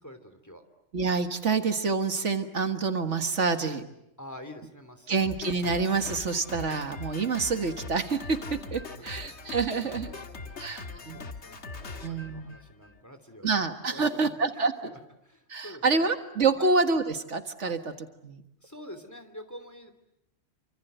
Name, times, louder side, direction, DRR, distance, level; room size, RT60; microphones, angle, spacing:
voice 1, 0.0-0.6 4.2-5.3 8.8-11.6 12.0-13.6 13.9-16.1 16.5-16.7 17.6-17.7 18.6-19.9, equal, 15° left, 8 dB, 2.8 m, -47 dB
voice 2, 0.9-3.8 5.1-10.1 10.6-11.2 12.0-12.5 13.4-14.9 15.5-17.8 18.2-18.4, right 4 dB, 75° right, 7 dB, 2.0 m, -27 dB
Drum kit, 5.2-13.0, left 3 dB, 70° left, 1.9 m, -41 dB
28.5 x 25.5 x 8.0 m, 0.82 s
omnidirectional pair, 1.2 m